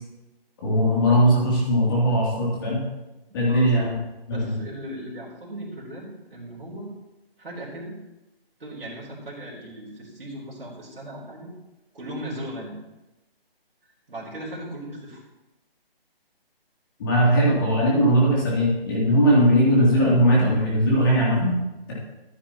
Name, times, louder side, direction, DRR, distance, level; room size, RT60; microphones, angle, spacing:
voice 1, 0.6-2.8 3.3-3.9 4.3-4.5 17.0-21.6, equal, 20° left, -6 dB, 3.1 m, -19 dB
voice 2, 3.4-3.9 4.3-6.9 7.4-8.0 8.6-11.5 11.9-12.7 14.1-15.2, right 1 dB, 70° right, -5 dB, 3.9 m, -37 dB
14.5 x 9.3 x 3.0 m, 1.0 s
hypercardioid pair, 170°, 30 cm